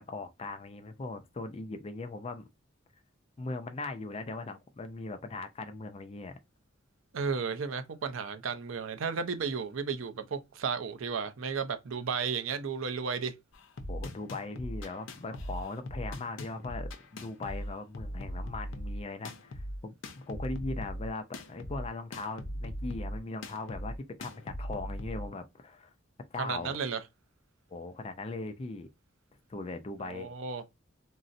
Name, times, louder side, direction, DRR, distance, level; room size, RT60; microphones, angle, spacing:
voice 1, 0.0-2.5 3.4-6.4 13.9-25.9 26.3-26.8 27.7-28.9 29.5-30.3, left 3 dB, 30° left, 0.4 m, -39 dB
voice 2, 7.1-13.3 26.4-27.0 30.0-30.6, right 5 dB, 80° right, 0.5 m, -33 dB
sound 1, 13.5-25.3, equal, 70° left, 0.6 m, -39 dB
3.8 x 2.0 x 2.5 m
head